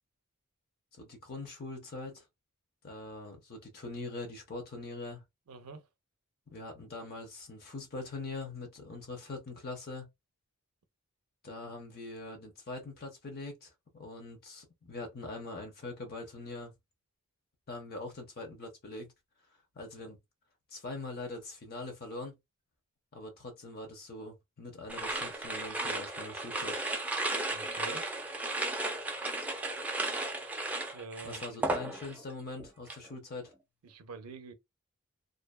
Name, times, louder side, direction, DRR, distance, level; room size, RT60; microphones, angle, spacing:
voice 1, 0.9-2.3 2.8-5.2 6.5-10.1 11.4-16.7 17.7-19.1 19.7-20.2 20.7-22.3 23.1-26.8 31.2-33.5, left 2 dB, 45° left, 0.6 m, -42 dB
voice 2, 5.5-5.8 27.5-28.1 30.9-31.6 33.8-34.5, right 4 dB, 85° right, 0.5 m, -46 dB
sound 1, 24.9-32.3 32.6-33.1, right 2 dB, 5° right, 0.4 m, -35 dB
2.5 x 2.2 x 2.2 m
head